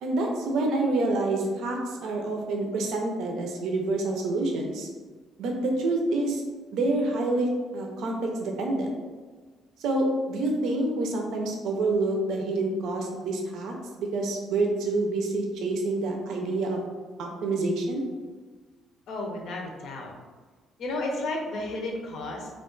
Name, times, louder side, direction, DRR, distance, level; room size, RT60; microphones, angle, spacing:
voice 1, 0.0-4.9 5.4-6.4 6.7-8.9 9.8-16.8 17.2-18.0, right 2 dB, 75° right, 1 dB, 0.5 m, -27 dB
voice 2, 19.1-20.1 20.8-22.5, left 2 dB, 65° left, 1 dB, 0.6 m, -32 dB
2.4 x 2.3 x 3.7 m, 1.4 s
cardioid pair, 95°, 0 cm